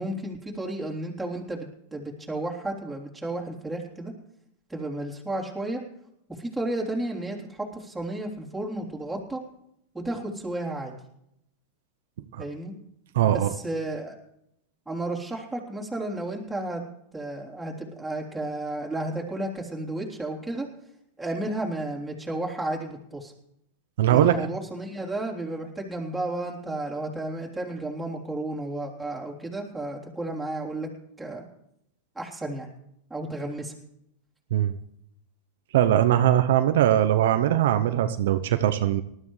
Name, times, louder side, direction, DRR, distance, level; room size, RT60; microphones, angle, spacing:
voice 1, 0.0-4.1 4.7-5.8 6.4-9.4 9.9-10.9 12.4-12.7 13.2-14.2 14.8-16.8 17.1-20.7 21.2-23.3 24.1-30.9 31.2-31.4 32.1-32.7 33.1-33.7, right 2 dB, 5° right, -3 dB, 3.4 m, -32 dB
voice 2, 13.1-13.5 24.0-24.3 34.5-34.7 35.7-39.0, right 11 dB, 70° right, 9 dB, 0.7 m, -21 dB
19.5 x 13.0 x 3.3 m, 0.76 s
hypercardioid pair, 120°, 0 cm